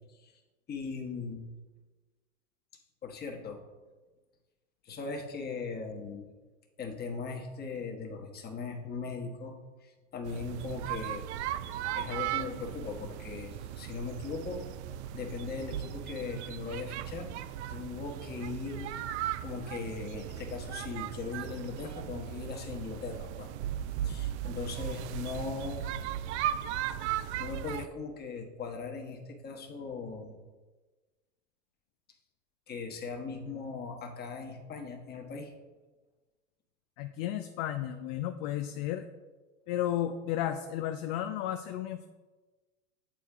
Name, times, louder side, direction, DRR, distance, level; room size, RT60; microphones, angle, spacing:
voice 1, 0.7-1.4 3.0-3.6 4.8-6.3 6.8-9.5 9.8-11.2 11.9-14.7 15.1-17.3 17.7-18.9 19.4-23.5 24.0-25.9 27.4-30.4 32.7-35.5, left 4 dB, 25° left, 1 dB, 1.3 m, -39 dB
sound 1, 10.2-27.9, right 11 dB, 60° right, 0.5 m, -37 dB
voice 2, 37.0-39.1 39.7-42.1, left 11 dB, 45° left, 7 dB, 0.5 m, -33 dB
8.7 x 4.3 x 3.6 m, 1.3 s
hypercardioid pair, 100°, 38 cm